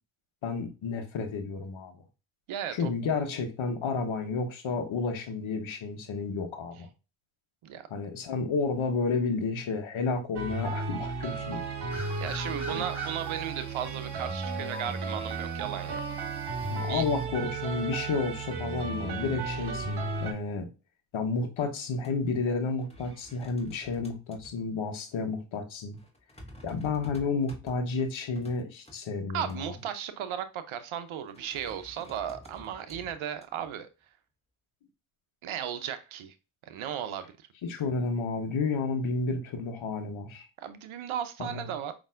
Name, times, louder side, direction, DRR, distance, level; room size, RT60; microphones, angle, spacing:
voice 1, 0.4-1.9 2.7-6.9 7.9-11.6 12.7-12.8 16.7-20.7 21.1-26.0 26.6-29.6 37.6-40.5 41.4-41.7, left 4 dB, 70° left, 1.2 m, -31 dB
voice 2, 2.5-2.9 7.6-7.9 11.9-16.0 16.8-17.1 29.3-33.9 35.4-36.3 36.6-37.3 40.6-41.9, right 9 dB, 75° right, 0.8 m, -36 dB
sound 1, 10.3-20.3, right 4 dB, 55° right, 1.3 m, -34 dB
sound 2, 11.9-17.3, equal, 5° right, 2.3 m, -47 dB
sound 3, 21.8-22.1 22.4-22.5 22.8-24.6 25.1-25.2 25.9-29.0 29.5-30.0 31.3-33.7, equal, 10° left, 1.5 m, -50 dB
5.4 x 2.9 x 2.4 m
supercardioid pair, 40°, 49 cm